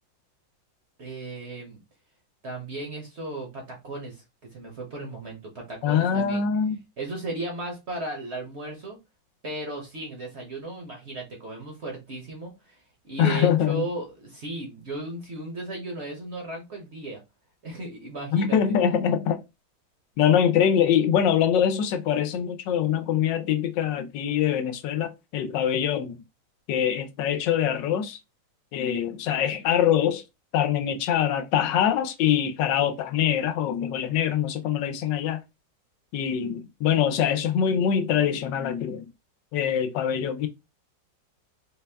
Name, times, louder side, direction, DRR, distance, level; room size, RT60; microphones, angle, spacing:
voice 1, 1.0-1.8 2.4-4.2 4.5-6.5 7.0-9.0 9.4-17.2 17.6-18.8, right 2 dB, 50° right, 0.9 m, -36 dB
voice 2, 5.8-6.8 13.2-13.8 18.3-19.4 20.2-26.2 26.7-28.2 28.7-30.2 30.5-35.4 36.1-39.1 39.5-40.5, left 9 dB, 75° left, 1.2 m, -24 dB
4.1 x 2.2 x 3.3 m
omnidirectional pair, 2.0 m